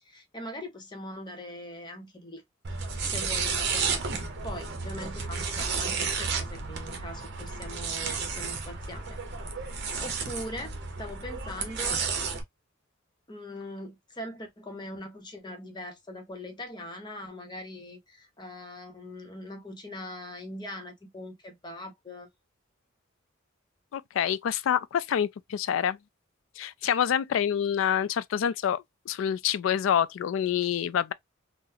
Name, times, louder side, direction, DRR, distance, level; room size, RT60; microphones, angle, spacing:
voice 1, 0.0-2.4 2.7-2.8 3.1-4.0 4.4-9.2 10.0-12.0 13.3-22.3, left 1 dB, 20° left, 0.8 m, -41 dB
sound 1, 2.6-12.4, right 5 dB, 55° right, 0.8 m, -32 dB
voice 2, 23.9-26.0 26.6-31.1, left 9 dB, 70° left, 0.3 m, -27 dB
3.8 x 2.1 x 2.7 m
head